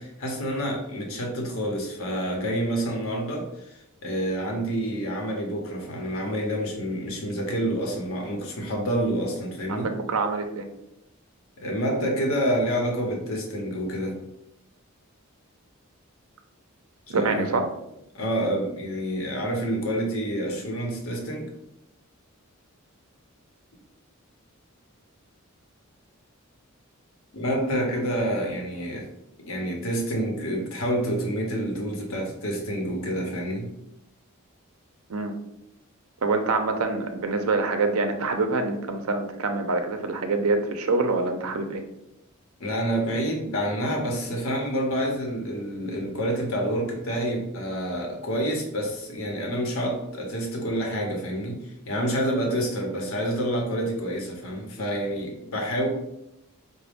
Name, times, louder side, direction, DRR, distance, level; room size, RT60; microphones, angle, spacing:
voice 1, 0.0-9.9 11.6-14.2 17.1-17.6 18.1-21.5 27.3-29.1 29.4-33.7 42.6-55.9, equal, 70° left, 1 dB, 0.9 m, -28 dB
voice 2, 9.7-10.7 17.1-17.6 35.1-35.3 36.2-41.8, right 3 dB, 85° right, 6 dB, 0.5 m, -25 dB
4.8 x 2.1 x 3.4 m, 0.84 s
head